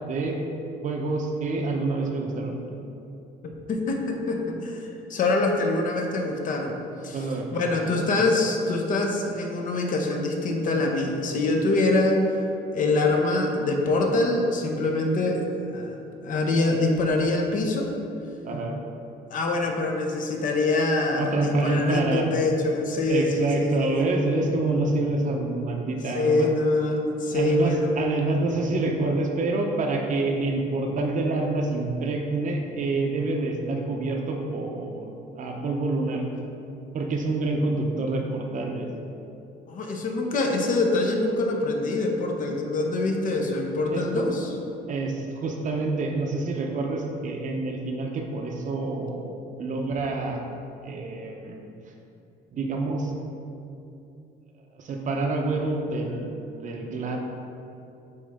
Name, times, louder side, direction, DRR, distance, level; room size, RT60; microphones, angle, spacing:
voice 1, 0.1-0.4 0.8-2.6 7.1-8.0 18.4-18.8 21.2-22.3 23.1-26.5 27.3-35.1 35.4-36.2 36.9-38.9 43.9-44.3 44.9-50.4 50.8-51.6 52.5-53.1 54.7-57.2, right 2 dB, 50° right, 2 dB, 0.8 m, -27 dB
voice 2, 3.4-6.8 7.0-7.2 7.5-12.2 12.7-15.4 15.7-17.9 19.3-24.0 26.1-27.9 39.7-44.5, left 2 dB, 50° left, 2 dB, 0.8 m, -24 dB
9.0 x 3.1 x 3.6 m, 2.8 s
cardioid pair, 110°, 17 cm